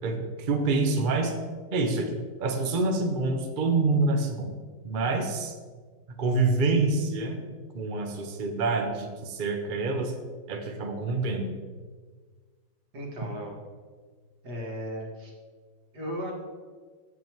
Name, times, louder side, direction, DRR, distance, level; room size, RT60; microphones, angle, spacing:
voice 1, 0.0-1.3 1.7-2.1 2.4-4.5 4.8-5.5 6.2-7.4 7.7-10.1 10.5-11.6, right 3 dB, 45° right, 4 dB, 0.6 m, -26 dB
voice 2, 12.9-13.5 14.4-15.3 15.9-16.3, equal, 60° right, -1 dB, 2.3 m, -35 dB
8.4 x 7.5 x 4.6 m, 1.5 s
omnidirectional pair, 2.0 m